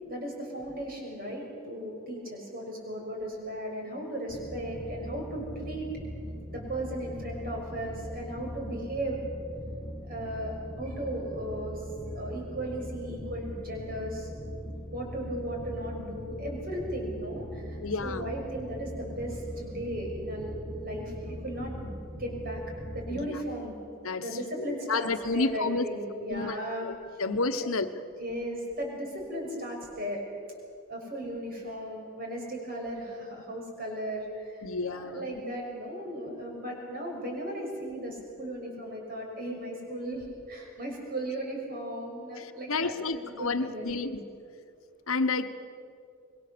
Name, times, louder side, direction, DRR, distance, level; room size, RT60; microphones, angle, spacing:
voice 1, 0.0-5.9 6.5-9.2 10.0-14.3 14.9-20.5 20.8-22.6 22.9-23.7 24.2-26.9 27.1-27.2 27.6-27.7 28.2-30.3 30.9-44.0, right 1 dB, 40° right, 0 dB, 6.1 m, -36 dB
sound 1, 4.3-23.2, equal, 15° left, 1.8 m, -40 dB
voice 2, 17.8-18.3 23.1-23.4 24.0-24.2 24.7-25.9 26.3-26.6 26.8-26.9 27.2-27.9 34.6-35.4 42.4-44.2 45.1-45.5, left 3 dB, 75° left, 9 dB, 1.2 m, -30 dB
26.0 x 22.5 x 6.9 m, 2.4 s
head